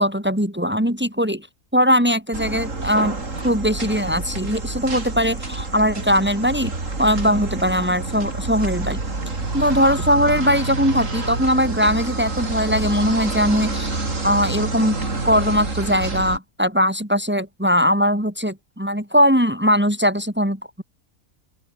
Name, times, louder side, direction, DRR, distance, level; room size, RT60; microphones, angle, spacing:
voice 1, 0.0-1.5 1.7-6.7 7.0-9.0 9.5-14.0 14.2-20.8, equal, 10° right, 6.0 m, -20 dB
sound 1, 2.3-16.4, right 3 dB, 70° right, 4.1 m, -28 dB
open air
omnidirectional pair, 1.4 m